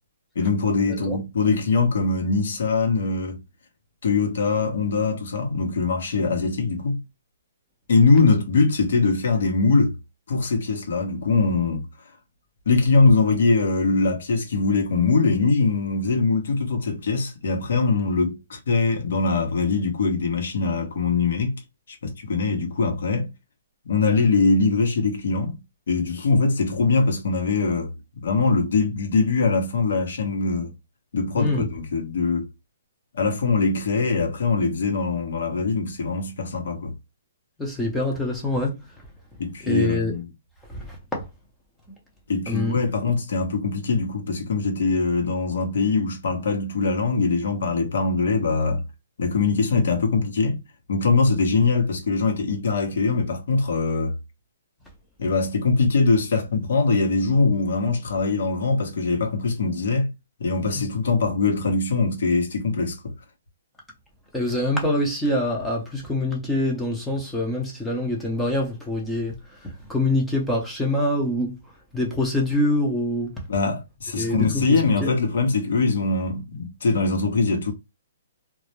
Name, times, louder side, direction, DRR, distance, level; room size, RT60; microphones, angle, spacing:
voice 1, 0.3-3.4 4.0-7.0 7.9-10.0 10.3-11.9 12.7-21.6 21.9-23.3 23.8-25.6 25.9-27.9 28.2-30.7 31.1-32.5 33.1-36.9 39.4-40.3 42.3-48.8 49.2-50.6 50.9-54.1 55.2-60.1 60.4-63.1 73.5-77.7, left 4 dB, 65° left, 0.9 m, -22 dB
voice 2, 37.6-38.8 39.6-40.1 40.7-41.2 42.5-42.8 60.7-60.8 64.3-69.3 69.6-71.6 71.9-73.4 74.1-74.7 75.0-75.1, left 1 dB, 5° left, 0.6 m, -25 dB
2.3 x 2.0 x 2.9 m
hypercardioid pair, 165°, 0 cm